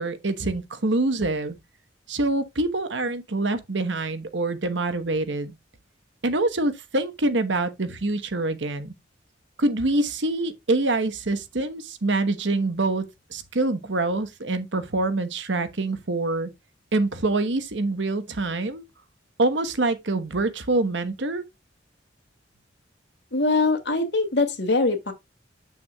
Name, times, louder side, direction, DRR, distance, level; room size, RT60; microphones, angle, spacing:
voice 1, 0.0-1.6 2.1-5.5 6.2-8.9 9.6-16.5 16.9-18.8 19.4-21.4, right 2 dB, 70° right, 1.2 m, -25 dB
voice 2, 23.3-25.1, left 3 dB, 60° left, 2.4 m, -22 dB
8.1 x 7.0 x 2.3 m
head